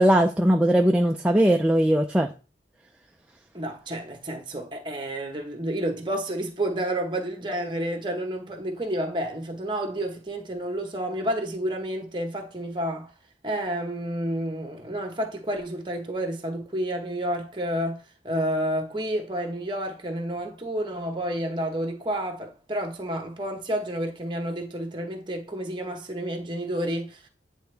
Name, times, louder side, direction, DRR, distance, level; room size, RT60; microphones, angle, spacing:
voice 1, 0.0-2.3, right 1 dB, 5° right, 0.3 m, -19 dB
voice 2, 3.5-13.1 13.4-27.3, right 1 dB, 25° right, 1.0 m, -30 dB
9.2 x 3.4 x 3.3 m
head